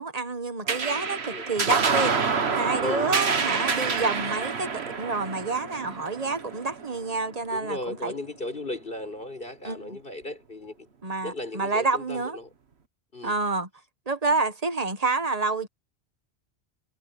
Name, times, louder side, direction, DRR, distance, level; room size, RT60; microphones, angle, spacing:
voice 1, 0.0-2.2 2.5-8.1 9.6-10.0 11.0-12.4 13.2-13.7 14.1-15.7, right 3 dB, 35° right, 1.3 m, -28 dB
sound 1, 0.7-7.5, right 5 dB, 75° right, 1.6 m, -27 dB
voice 2, 2.8-3.1 7.5-10.9 11.2-12.5 13.1-13.4, left 2 dB, 55° left, 5.6 m, -36 dB
omnidirectional pair, 1.1 m